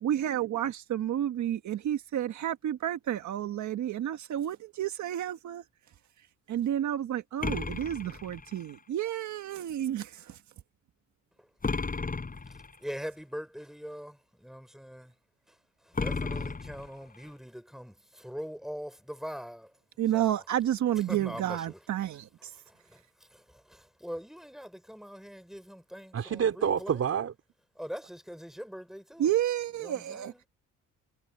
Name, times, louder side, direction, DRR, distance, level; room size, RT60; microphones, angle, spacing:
voice 1, 0.0-5.6 6.5-10.4 20.0-22.3 29.2-30.3, right 11 dB, 70° right, 1.6 m, -30 dB
sound 1, 7.4-8.8 11.6-12.8 15.9-17.3, left 4 dB, 30° left, 7.5 m, -34 dB
voice 2, 12.5-15.1 16.0-19.7 20.1-20.4 20.9-27.0 27.7-29.3 29.8-30.5, equal, ahead, 4.8 m, -43 dB
voice 3, 26.1-27.3, right 8 dB, 55° right, 3.9 m, -28 dB
cardioid pair, 90°, 30 cm